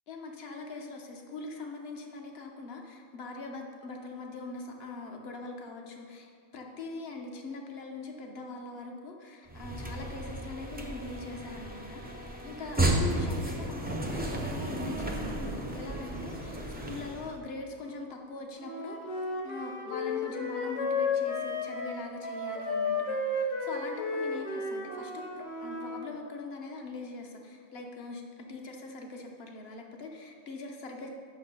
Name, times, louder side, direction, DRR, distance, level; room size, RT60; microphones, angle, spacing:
voice 1, 0.1-31.1, left 3 dB, 55° left, 2 dB, 1.1 m, -42 dB
sound 1, 9.5-17.4, right 1 dB, 10° right, 0.4 m, -33 dB
Wind instrument woodwind instrument, 18.6-26.0, left 3 dB, 25° left, 0.8 m, -33 dB
6.3 x 5.9 x 5.3 m, 2.2 s
omnidirectional pair, 1.4 m